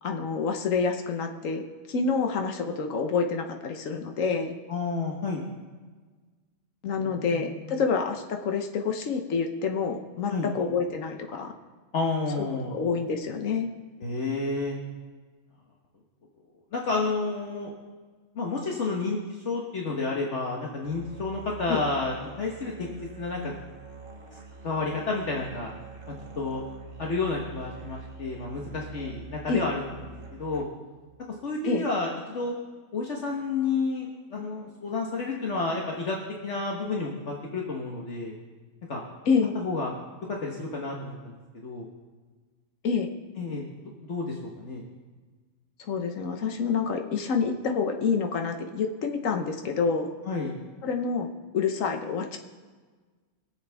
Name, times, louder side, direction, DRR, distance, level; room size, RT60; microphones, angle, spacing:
voice 1, 0.0-1.6 1.9-4.6 6.8-11.5 12.4-13.7 21.7-21.8 29.5-29.7 31.6-31.9 39.3-39.5 42.8-43.1 45.8-50.1 50.8-52.4, left 5 dB, 85° left, 4 dB, 1.4 m, -27 dB
voice 2, 4.7-5.4 7.0-7.3 10.3-10.5 11.9-12.7 14.0-14.8 16.7-17.7 18.3-22.9 23.2-23.5 24.3-24.4 24.6-25.7 26.4-26.6 27.0-29.8 30.4-30.6 31.4-32.6 32.9-36.2 36.4-38.3 38.9-39.0 39.5-39.9 40.3-41.3 41.6-41.9 43.4-43.6 44.0-44.8 50.3-50.6, left 3 dB, 65° left, -2 dB, 1.6 m, -30 dB
Musical instrument, 20.8-31.0, right 4 dB, 45° right, 1.6 m, -45 dB
23.0 x 7.9 x 3.5 m, 1.4 s
omnidirectional pair, 1.3 m